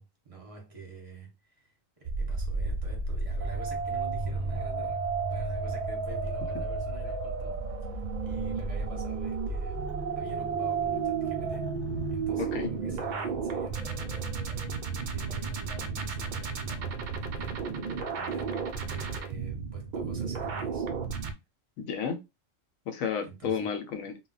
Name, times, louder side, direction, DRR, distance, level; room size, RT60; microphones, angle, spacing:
voice 1, 0.0-7.6 8.2-11.7 12.1-17.6 18.2-20.9 23.2-23.7, right 3 dB, 35° right, 0.7 m, -46 dB
sound 1, 2.0-21.3, right 4 dB, 85° right, 0.4 m, -32 dB
voice 2, 12.4-12.7 21.8-22.2 22.9-24.2, left 7 dB, 90° left, 1.0 m, -32 dB
2.3 x 2.0 x 3.8 m
omnidirectional pair, 1.4 m